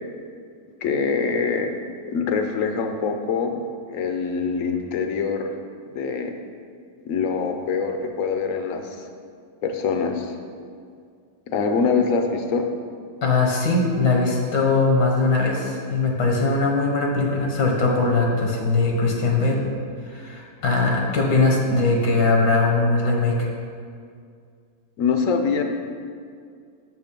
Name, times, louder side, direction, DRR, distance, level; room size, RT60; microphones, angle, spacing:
voice 1, 0.8-1.7 2.1-3.6 3.9-5.5 5.9-6.3 7.0-9.0 9.6-10.3 11.5-12.6 25.0-25.6, left 5 dB, 65° left, 5 dB, 0.9 m, -24 dB
voice 2, 13.2-19.6 20.0-23.5, left 3 dB, 80° left, 1 dB, 1.6 m, -20 dB
6.4 x 5.9 x 5.2 m, 2.2 s
omnidirectional pair, 1.8 m